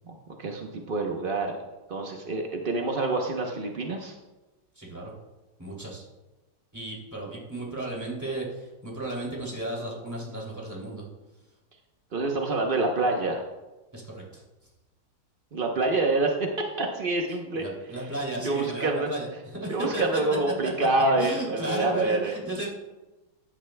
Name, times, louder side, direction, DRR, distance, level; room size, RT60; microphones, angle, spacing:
voice 1, 0.1-1.5 1.9-4.2 12.1-13.4 15.5-17.6 18.4-19.1 19.7-22.3, right 2 dB, 70° right, 2 dB, 0.5 m, -27 dB
voice 2, 4.8-5.1 5.6-6.0 6.7-11.0 13.9-14.4 17.5-20.2 20.6-22.7, right 2 dB, 10° right, -3 dB, 2.6 m, -34 dB
14.5 x 10.0 x 2.2 m, 1.1 s
omnidirectional pair, 2.3 m